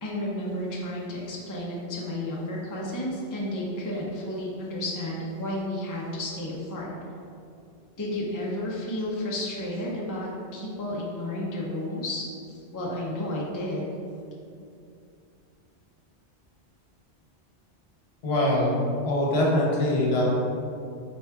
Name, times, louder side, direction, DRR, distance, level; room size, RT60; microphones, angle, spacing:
voice 1, 0.0-6.9 8.0-12.3 12.7-13.9, left 1 dB, 25° left, -5 dB, 0.4 m, -32 dB
voice 2, 18.2-18.8 19.0-20.2, left 1 dB, 65° left, -4 dB, 1.1 m, -23 dB
4.2 x 2.3 x 4.4 m, 2.5 s
omnidirectional pair, 1.2 m